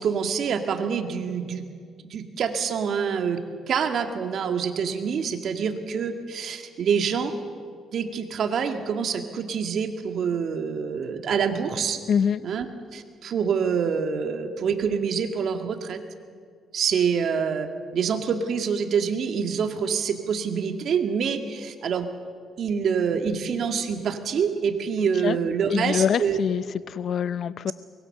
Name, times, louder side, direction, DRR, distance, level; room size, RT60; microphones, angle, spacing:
voice 1, 0.0-1.7 2.1-3.4 3.7-7.3 7.9-12.0 12.4-12.7 12.9-16.0 16.7-22.1 22.6-26.4, right 6 dB, 65° right, 6 dB, 2.1 m, -26 dB
voice 2, 12.1-12.4 25.0-25.4 25.7-27.7, left 7 dB, 60° left, 17 dB, 0.6 m, -25 dB
23.5 x 21.5 x 6.7 m, 2.1 s
cardioid pair, 90°, 0 cm